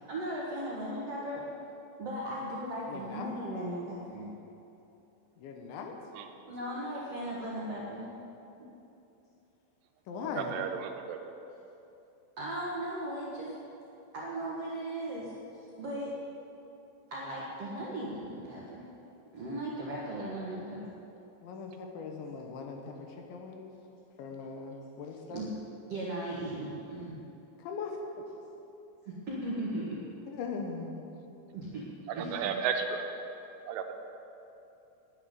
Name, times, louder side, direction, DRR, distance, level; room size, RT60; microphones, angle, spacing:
voice 1, 0.1-1.4 2.0-4.3 6.5-8.1 8.6-8.7 12.4-13.5 14.1-16.1 17.1-18.8 19.3-20.8 25.3-25.5 25.9-27.2 29.0-30.0 31.5-31.8 32.1-32.5, right 1 dB, 70° right, -6 dB, 1.5 m, -37 dB
voice 2, 2.9-3.3 5.4-5.9 6.6-7.0 10.1-10.6 21.4-23.7 24.2-25.4 27.6-28.2 30.2-31.1, left 5 dB, 75° left, 3 dB, 3.2 m, -40 dB
voice 3, 10.4-11.2 32.2-33.0 33.7-33.9, right 7 dB, 90° right, 5 dB, 3.4 m, -33 dB
10.5 x 8.5 x 9.7 m, 2.9 s
omnidirectional pair, 5.6 m